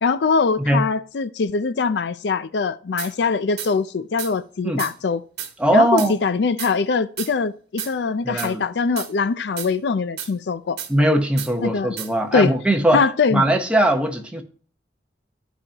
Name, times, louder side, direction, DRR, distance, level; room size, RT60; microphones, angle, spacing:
voice 1, 0.0-5.2 5.7-10.8 11.6-11.9 12.3-12.5 12.9-13.4, left 4 dB, 70° left, 0.4 m, -22 dB
sound 1, 3.0-3.1 3.6-3.7 4.2-4.3 4.8-4.9 5.4-5.5 6.0-6.1 6.6-6.7 7.2-7.3 7.8-7.9 8.4-8.5 9.0-9.1 9.6-9.7 10.2-10.3 10.8-10.9 11.4-11.5 12.0-12.1, right 9 dB, 60° right, 1.4 m, -31 dB
voice 2, 5.6-6.1 8.2-8.6 10.9-13.0 13.3-14.4, right 1 dB, 5° right, 1.0 m, -19 dB
13.0 x 5.0 x 2.9 m
head